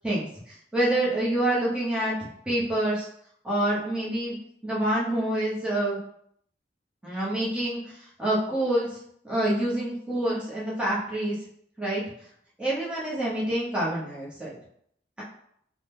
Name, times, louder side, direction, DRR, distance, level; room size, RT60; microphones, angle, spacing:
voice 1, 0.0-3.1 3.4-4.4 4.6-6.0 7.0-8.9 9.2-11.4 11.8-12.0 12.6-14.5, right 1 dB, 5° right, -7 dB, 0.9 m, -27 dB
2.9 x 2.2 x 3.4 m, 0.69 s
head